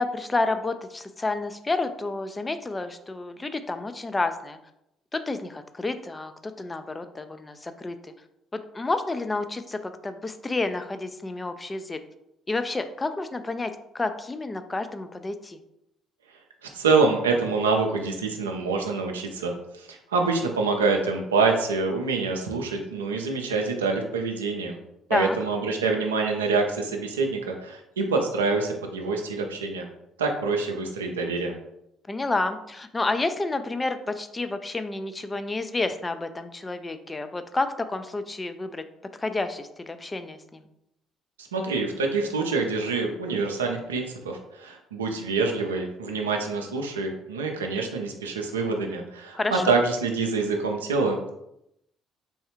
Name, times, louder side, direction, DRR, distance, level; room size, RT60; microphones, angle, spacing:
voice 1, 0.0-4.6 5.1-8.1 8.5-12.0 12.5-15.6 25.1-25.4 32.1-38.8 39.2-40.6 49.3-49.8, left 3 dB, 20° left, 9 dB, 0.4 m, -30 dB
voice 2, 16.6-24.8 25.1-29.9 30.2-31.5 41.4-51.3, right 4 dB, 85° right, 3 dB, 0.5 m, -26 dB
3.4 x 3.1 x 3.0 m, 0.81 s
figure-of-eight pair, 50°, 0 cm